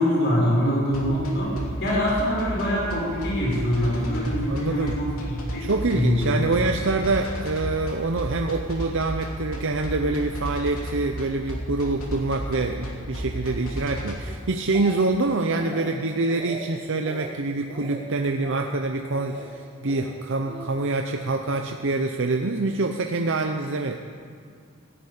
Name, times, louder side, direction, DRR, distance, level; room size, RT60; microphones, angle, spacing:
voice 1, 0.0-6.7, equal, 55° left, -5 dB, 5.2 m, -24 dB
sound 1, 0.9-14.1, right 1 dB, 90° left, 2.8 m, -33 dB
voice 2, 4.5-5.0 5.6-24.0, right 3 dB, 60° right, 4 dB, 0.8 m, -26 dB
Speech, 14.3-15.3 15.5-15.9 16.3-16.7 17.0-17.3 17.7-18.0 18.4-18.7 19.1-19.5 19.9-20.7 21.5-21.7, right 2 dB, 25° right, 2.2 m, -39 dB
16.5 x 10.0 x 8.6 m, 2.2 s
head